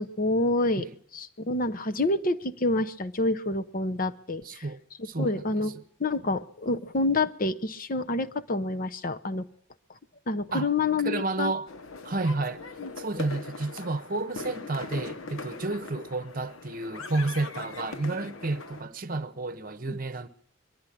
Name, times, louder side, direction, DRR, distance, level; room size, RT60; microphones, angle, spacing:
voice 1, 0.0-0.9 1.1-4.6 5.2-5.7 6.0-9.5 10.3-11.5 12.8-12.9 19.9-20.0, left 2 dB, 45° left, 0.9 m, -28 dB
voice 2, 4.4-5.8 10.5-10.7 11.0-11.7 12.0-12.6 13.0-20.3, right 2 dB, 45° right, 1.0 m, -31 dB
sound 1, 11.7-18.8, left 3 dB, 80° left, 1.1 m, -40 dB
22.5 x 12.0 x 10.0 m
head